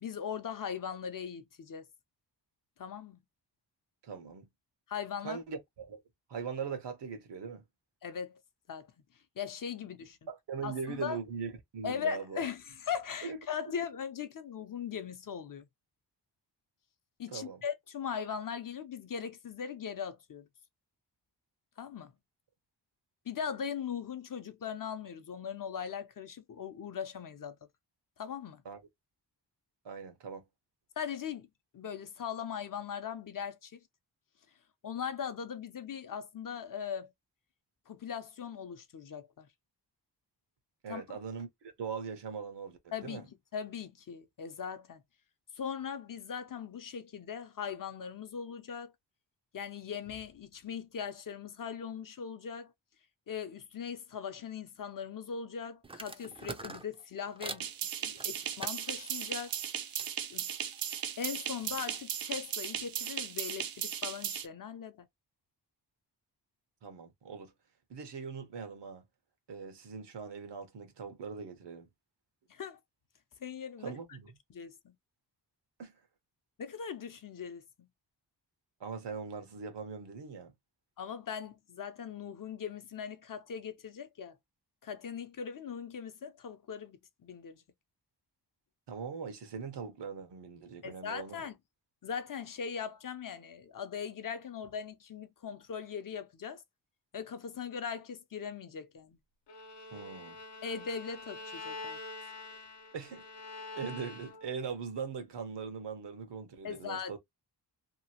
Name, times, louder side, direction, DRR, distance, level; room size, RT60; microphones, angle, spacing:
voice 1, 0.0-1.8 2.8-3.2 4.9-5.4 8.0-8.4 8.7-8.9 9.4-10.2 10.6-11.2 11.8-15.7 17.2-20.5 21.8-22.1 23.3-27.6 28.2-28.6 31.0-31.5 31.7-33.8 34.8-37.1 37.9-39.5 40.9-41.2 42.9-45.0 45.5-48.9 49.5-52.7 53.3-57.7 58.0-59.6 60.3-60.5 61.2-65.1 72.5-72.8 73.4-73.9 74.5-74.9 76.6-77.9 81.0-84.4 84.8-87.6 90.8-91.6 92.0-96.6 97.1-99.2 100.6-102.0 106.6-107.2, left 7 dB, 50° left, 0.7 m, -40 dB
voice 2, 4.0-4.5 5.2-6.0 6.3-7.6 10.3-12.4 13.2-13.4 17.3-17.6 28.6-28.8 29.8-30.4 40.8-43.2 66.8-67.5 67.9-69.0 69.5-71.9 73.8-74.4 75.8-75.9 78.8-80.5 88.9-91.4 99.9-100.4 102.9-103.2 103.8-107.2, right 6 dB, 80° right, 1.1 m, -41 dB
sound 1, 55.8-57.7 58.2-60.1 60.5-63.1, right 3 dB, 15° right, 0.5 m, -47 dB
sound 2, 57.6-64.5, right 9 dB, 60° right, 0.6 m, -37 dB
Bowed string instrument, 99.5-104.6, left 3 dB, 85° left, 0.9 m, -45 dB
2.9 x 2.4 x 2.8 m
cardioid pair, 90°, 41 cm